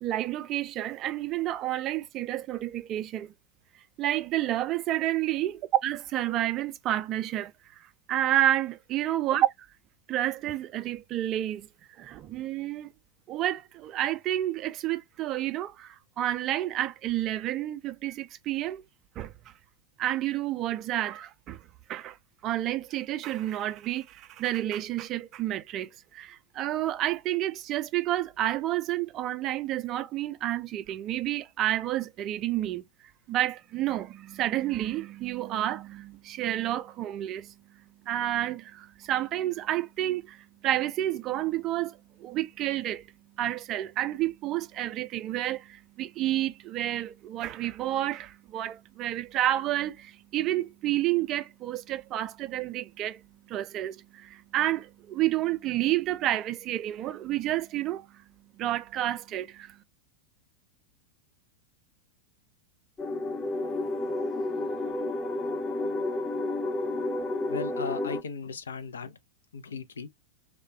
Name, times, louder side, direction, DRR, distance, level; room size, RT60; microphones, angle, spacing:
voice 1, 0.0-3.3 4.0-9.7 10.1-11.7 12.0-12.9 13.3-18.8 19.2-19.3 20.0-21.6 21.9-22.2 22.4-32.9 33.3-43.1 43.4-58.2 58.6-59.8, right 13 dB, 35° right, 0.4 m, -30 dB
sound 1, 63.0-68.2, left 2 dB, 20° left, 0.6 m, -31 dB
voice 2, 67.5-69.2 69.5-70.1, left 5 dB, 70° left, 0.4 m, -36 dB
2.2 x 2.2 x 3.2 m
figure-of-eight pair, 90°, 0 cm